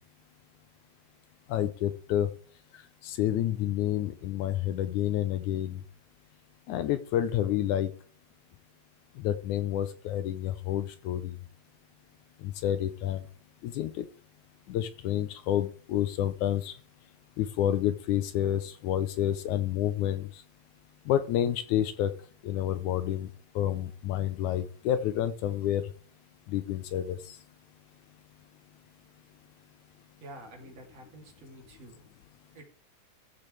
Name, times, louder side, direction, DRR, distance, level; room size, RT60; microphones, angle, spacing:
voice 1, 1.5-2.3 3.0-5.8 6.7-7.9 9.2-11.3 12.4-13.2 13.6-14.1 14.7-16.7 17.4-20.3 21.1-22.1 22.4-23.3 23.6-25.8 26.5-27.2, left 11 dB, 75° left, 11 dB, 2.0 m, -29 dB
voice 2, 30.2-32.1 32.5-32.6, right 1 dB, 50° right, 1 dB, 3.9 m, -48 dB
15.5 x 6.9 x 3.4 m, 0.42 s
omnidirectional pair, 3.8 m